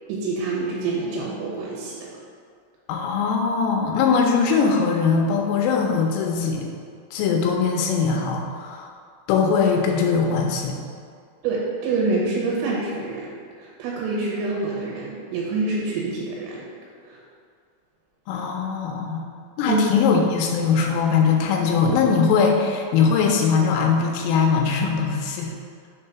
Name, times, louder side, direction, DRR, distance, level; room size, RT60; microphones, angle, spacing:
voice 1, 0.1-2.1 11.4-13.3 13.6-16.7 17.0-17.2 19.7-19.8, right 3 dB, 85° right, -4 dB, 3.7 m, -26 dB
voice 2, 2.9-6.7 7.1-8.9 9.3-10.8 18.3-19.3 19.6-25.5, left 5 dB, 85° left, 1 dB, 3.2 m, -21 dB
7.5 x 3.7 x 5.6 m, 2.1 s
omnidirectional pair, 5.9 m